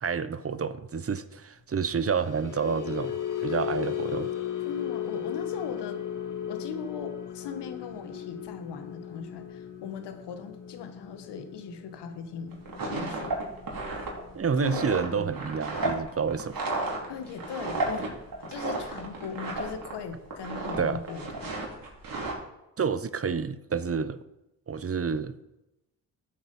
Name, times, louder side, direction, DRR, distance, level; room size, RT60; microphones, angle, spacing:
voice 1, 0.0-4.3 14.3-16.7 20.8-21.0 22.8-24.2 24.7-25.3, right 6 dB, 35° right, 1.0 m, -29 dB
sound 1, 1.9-18.3 18.6-18.9 19.3-19.5, left 10 dB, 50° left, 2.0 m, -37 dB
voice 2, 4.6-6.0 6.5-12.6 12.9-13.3 14.6-15.3 17.1-18.1 18.4-21.5, left 6 dB, 75° left, 1.7 m, -39 dB
sound 2, 12.5-20.0 20.3-20.8 21.1-22.3, right 2 dB, 55° right, 4.0 m, -33 dB
13.0 x 8.0 x 5.5 m
supercardioid pair, 55°, 41 cm